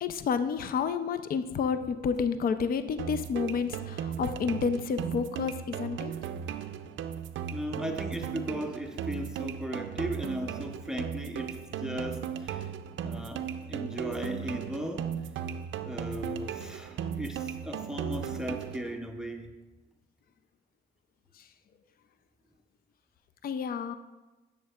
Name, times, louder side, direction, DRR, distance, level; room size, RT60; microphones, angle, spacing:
voice 1, 0.0-6.1 23.4-23.9, left 6 dB, 50° left, 11 dB, 0.5 m, -30 dB
sound 1, 3.0-19.0, right 8 dB, 75° right, 0.5 m, -36 dB
voice 2, 7.5-12.7 13.0-15.1 15.8-19.5, equal, 5° right, 5 dB, 0.6 m, -37 dB
10.5 x 7.1 x 2.4 m, 1.2 s
cardioid pair, 90°, 20 cm